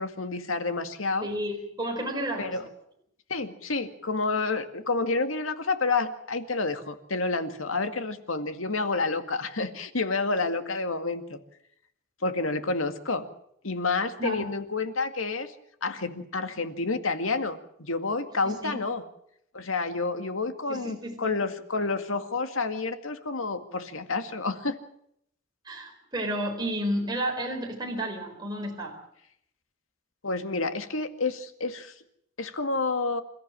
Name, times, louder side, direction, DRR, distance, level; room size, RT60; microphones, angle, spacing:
voice 1, 0.0-1.3 2.4-2.6 3.3-11.4 12.2-13.3 13.6-15.5 15.8-19.0 19.5-24.8 30.2-31.9 32.4-33.2, left 3 dB, 80° left, 8 dB, 2.1 m, -29 dB
voice 2, 1.2-2.5 14.2-14.5 18.4-18.8 20.7-21.3 25.6-29.0, right 1 dB, 20° right, 1 dB, 4.5 m, -32 dB
28.0 x 14.5 x 7.5 m, 0.72 s
head